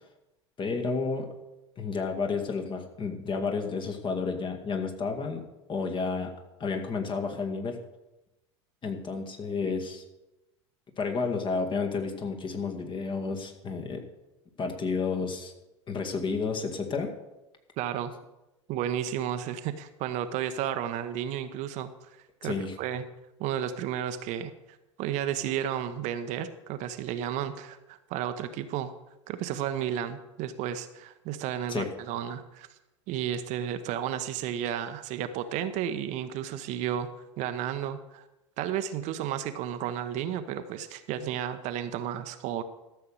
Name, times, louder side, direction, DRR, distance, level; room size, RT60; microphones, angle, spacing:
voice 1, 0.6-1.3 1.8-6.3 6.6-7.8 8.8-10.0 11.0-14.0 14.6-15.5 15.9-17.1 22.4-22.7 31.7-31.9, left 4 dB, 30° left, 4 dB, 2.0 m, -31 dB
voice 2, 17.8-18.1 18.7-21.9 22.4-23.0 23.4-24.5 25.0-28.9 29.3-32.7 33.1-37.1 37.4-38.2 38.6-42.6, right 10 dB, 50° right, 10 dB, 0.9 m, -32 dB
13.5 x 6.9 x 6.5 m, 0.97 s
figure-of-eight pair, 75°, 16 cm